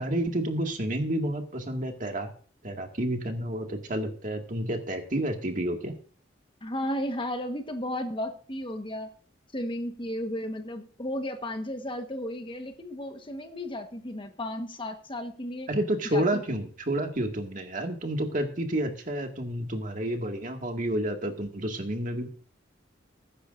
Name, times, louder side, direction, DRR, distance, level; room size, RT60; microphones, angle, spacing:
voice 1, 0.0-2.3 2.6-6.0 15.7-22.3, right 1 dB, 45° right, 3 dB, 2.0 m, -30 dB
voice 2, 6.6-9.1 9.5-15.7 16.1-16.4, left 1 dB, 30° left, 6 dB, 1.3 m, -34 dB
21.0 x 10.0 x 2.6 m, 0.44 s
head